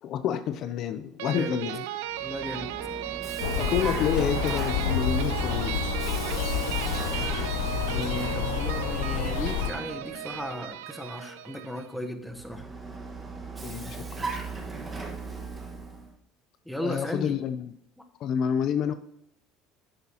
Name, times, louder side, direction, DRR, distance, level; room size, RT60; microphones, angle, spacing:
voice 1, 0.0-1.9 3.6-5.8 6.9-7.1 13.6-14.4 16.8-17.7 18.2-18.9, left 8 dB, 55° left, 11 dB, 0.5 m, -29 dB
sound 1, 1.2-11.9, right 12 dB, 90° right, 0.5 m, -35 dB
Vehicle, 2.1-10.6 12.3-16.1, right 3 dB, 20° right, 1.5 m, -38 dB
voice 2, 2.2-2.7 7.9-12.7 16.7-17.3, left 1 dB, ahead, 6 dB, 1.2 m, -35 dB
sound 2, 3.4-9.7, left 8 dB, 85° left, 0.7 m, -29 dB
10.5 x 8.0 x 2.9 m, 0.75 s
supercardioid pair, 105°, 0 cm